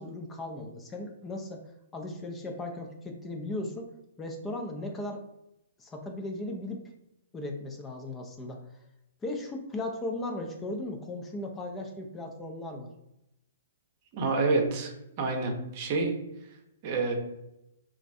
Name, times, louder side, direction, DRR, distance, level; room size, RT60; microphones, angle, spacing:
voice 1, 0.0-1.7 1.9-3.9 4.2-5.2 5.8-6.8 7.3-8.6 9.2-12.9, left 2 dB, 15° left, 3 dB, 0.4 m, -37 dB
voice 2, 14.1-14.9 15.2-16.1 16.8-17.1, right 3 dB, 40° right, 3 dB, 0.7 m, -27 dB
3.0 x 2.5 x 2.5 m, 0.86 s
figure-of-eight pair, 120°, 0 cm